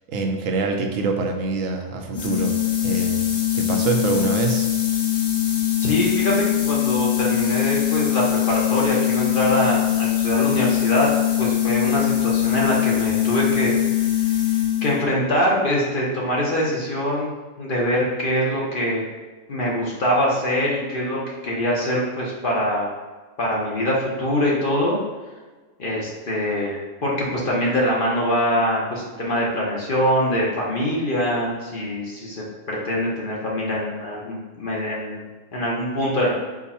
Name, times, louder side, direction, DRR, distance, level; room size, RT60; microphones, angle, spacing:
voice 1, 0.1-3.3 3.5-4.7, right 4 dB, 80° right, 4 dB, 1.0 m, -25 dB
sound 1, 2.1-15.1, left 12 dB, 80° left, 1.2 m, -22 dB
voice 2, 5.8-11.1 11.4-13.7 14.0-14.4 14.8-17.3 17.6-19.0 19.5-22.9 23.4-25.0 25.8-36.3, equal, 45° left, -4 dB, 0.9 m, -23 dB
4.8 x 2.3 x 4.1 m, 1.3 s
omnidirectional pair, 1.4 m